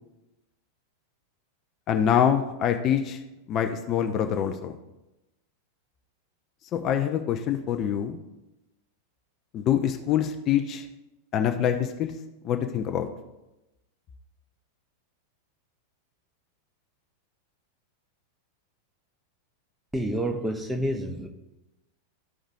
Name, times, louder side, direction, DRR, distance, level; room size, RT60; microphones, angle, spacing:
voice 1, 1.9-3.2 3.5-4.7 6.7-8.2 9.5-10.9 11.3-12.1 12.4-13.1, left 9 dB, 35° left, 5 dB, 0.6 m, -25 dB
voice 2, 19.9-21.3, right 1 dB, 5° right, 5 dB, 0.8 m, -28 dB
13.5 x 5.0 x 2.6 m, 0.97 s
figure-of-eight pair, 90°, 0 cm